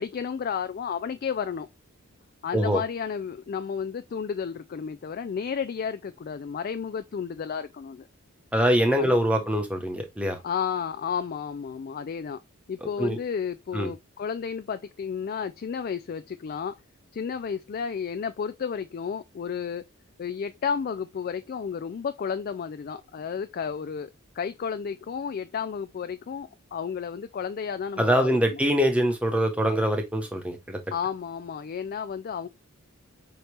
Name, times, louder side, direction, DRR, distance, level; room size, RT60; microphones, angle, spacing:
voice 1, 0.0-1.7 2.4-8.1 9.0-9.5 10.4-12.4 12.7-16.8 17.1-19.9 20.2-28.6 30.9-32.5, left 6 dB, 45° left, 0.3 m, -32 dB
voice 2, 8.5-10.4 13.0-13.2 13.7-13.9 28.0-30.8, equal, 5° right, 0.9 m, -24 dB
5.4 x 2.9 x 3.3 m
head